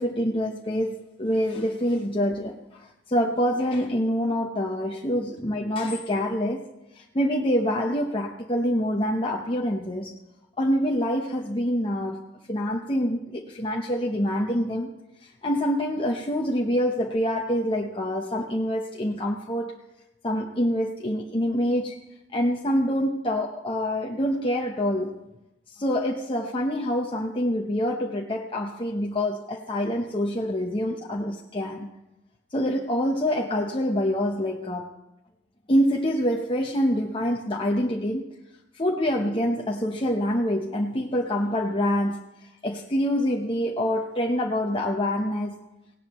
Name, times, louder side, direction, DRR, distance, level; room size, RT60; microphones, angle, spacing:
voice 1, 0.0-6.6 6.9-10.1 10.6-12.2 12.5-14.9 15.4-19.7 20.2-22.0 22.3-25.1 25.7-32.0 32.5-34.9 35.7-38.3 38.7-45.6, equal, 30° left, -1 dB, 1.0 m, -26 dB
17.5 x 17.5 x 3.1 m, 0.95 s
head